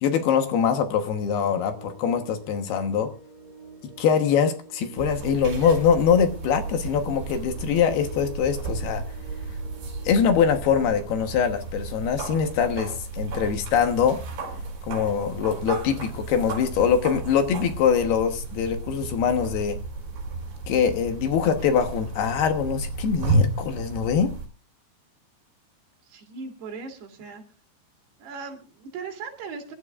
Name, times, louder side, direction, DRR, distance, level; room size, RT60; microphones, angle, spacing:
voice 1, 0.0-3.1 4.0-9.0 10.0-14.2 14.8-19.8 20.7-24.3, left 7 dB, 70° left, 7 dB, 3.0 m, -23 dB
sound 1, 1.3-11.3, right 5 dB, 40° right, 4.0 m, -48 dB
sound 2, 5.0-24.5, right 2 dB, 55° right, 6.3 m, -32 dB
voice 2, 26.0-27.4 28.2-29.7, right 5 dB, 70° right, 3 dB, 4.3 m, -38 dB
26.0 x 12.5 x 2.4 m, 0.35 s
omnidirectional pair, 5.1 m